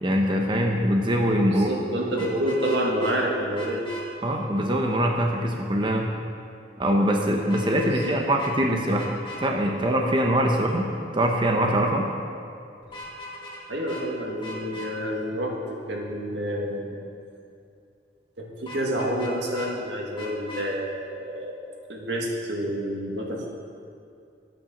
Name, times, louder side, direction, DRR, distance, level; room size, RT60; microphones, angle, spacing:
voice 1, 0.0-1.7 2.3-2.4 4.2-6.1 6.8-12.1, equal, 25° right, 1 dB, 1.0 m, -23 dB
voice 2, 1.4-3.9 7.8-8.2 13.7-17.0 18.4-21.6 21.9-23.5, equal, 85° right, -1 dB, 2.1 m, -28 dB
Vehicle horn car horn honking, 2.1-3.2 3.5-4.0 7.5-8.1 8.4-8.5 9.0-9.4 12.8-13.6 13.9-14.0 14.4-14.9 18.7-19.7 20.2-20.7, left 1 dB, 30° left, 2.4 m, -39 dB
12.0 x 8.7 x 7.2 m, 2.5 s
head